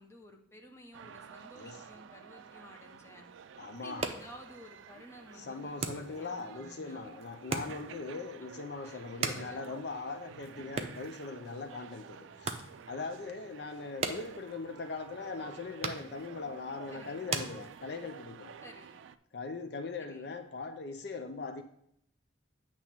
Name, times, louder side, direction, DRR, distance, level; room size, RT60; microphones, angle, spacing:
voice 1, 0.0-3.2 3.6-7.1 8.8-9.6 16.9-17.2 18.6-19.0 20.0-20.3, left 1 dB, 15° left, 2 dB, 0.7 m, -53 dB
sound 1, 0.9-19.2, right 7 dB, 80° right, 0.3 m, -51 dB
voice 2, 3.6-4.1 5.3-18.6 19.3-21.6, left 3 dB, 55° left, 7 dB, 0.5 m, -40 dB
sound 2, 3.7-18.2, right 4 dB, 35° right, 0.5 m, -42 dB
8.6 x 3.0 x 5.9 m, 0.71 s
head